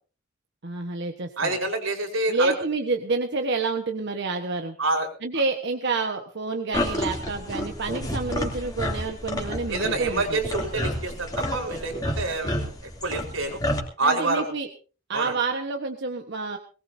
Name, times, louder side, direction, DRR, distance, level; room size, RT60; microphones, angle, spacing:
voice 1, 0.6-1.5 2.3-4.8 5.2-10.4 14.0-14.7 15.1-16.6, right 3 dB, 60° right, 4 dB, 1.3 m, -28 dB
voice 2, 1.4-2.5 4.8-5.1 9.7-12.7 13.0-13.6 14.0-14.5 15.1-15.3, right 2 dB, 90° right, 2 dB, 4.6 m, -27 dB
sound 1, 6.7-13.8, left 1 dB, 20° left, 3.0 m, -30 dB
21.5 x 19.0 x 2.8 m, 0.37 s
head